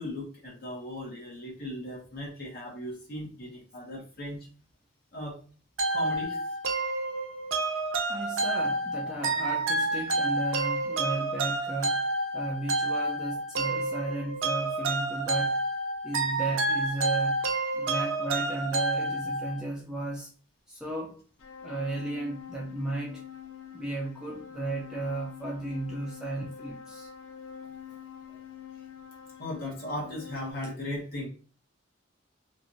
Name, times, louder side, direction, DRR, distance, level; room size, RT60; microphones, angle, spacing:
voice 1, 0.0-4.5 5.1-5.4 5.9-6.6 29.4-31.3, left 1 dB, 50° left, 1.1 m, -37 dB
sound 1, 5.8-19.6, right 2 dB, 85° right, 0.6 m, -29 dB
voice 2, 8.1-12.0 12.3-15.6 16.0-17.4 17.7-20.3 20.7-21.2 21.6-23.2 23.7-27.1 27.9-28.0 28.3-28.4, right 2 dB, 5° right, 0.4 m, -35 dB
sound 2, 21.4-30.5, left 8 dB, 85° left, 0.6 m, -45 dB
3.0 x 2.5 x 2.6 m
head